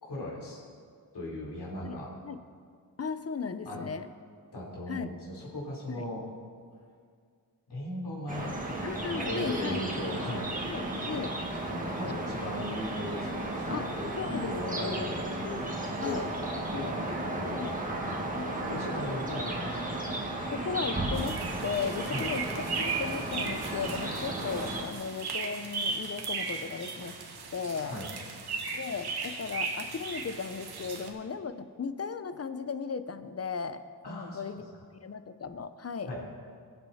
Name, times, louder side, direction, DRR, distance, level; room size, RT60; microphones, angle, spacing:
voice 1, 0.0-0.6 1.1-2.1 3.7-3.8 4.5-6.2 7.7-10.5 11.0-11.1 11.7-15.7 16.0-17.8 18.1-20.0 22.1-22.3 27.8-28.1 34.0-34.6 36.1-36.2, left 1 dB, 70° left, -4 dB, 3.9 m, -38 dB
voice 2, 1.8-2.4 3.0-4.1 4.9-5.1 5.9-6.1 8.8-9.8 10.6-11.3 13.7-13.9 14.2-15.1 16.0-16.3 16.7-16.9 17.5-17.8 18.3-18.6 19.4-19.5 20.1-20.2 20.5-22.4 22.7-27.2 27.5-28.0 28.7-34.7 35.0-36.1, left 5 dB, 35° left, 11 dB, 0.7 m, -36 dB
sound 1, 8.3-24.8, right 1 dB, 20° right, 1.8 m, -34 dB
sound 2, 21.1-31.1, right 4 dB, 65° right, 1.5 m, -37 dB
22.5 x 8.0 x 4.2 m, 2.1 s
wide cardioid pair, 115°, 41 cm